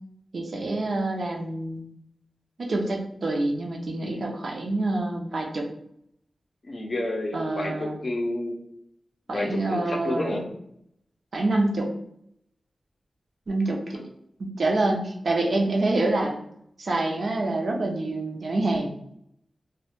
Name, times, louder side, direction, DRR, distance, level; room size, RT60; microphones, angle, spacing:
voice 1, 0.3-1.8 2.6-5.7 7.3-8.0 9.3-10.4 11.3-11.9 13.5-14.0 14.4-16.3 16.8-18.9, right 2 dB, 65° right, 0 dB, 0.4 m, -26 dB
voice 2, 6.6-8.6 9.3-10.5 13.9-14.0, left 1 dB, 50° left, 2 dB, 0.4 m, -30 dB
2.1 x 2.0 x 2.9 m, 0.73 s
wide cardioid pair, 100°, 0 cm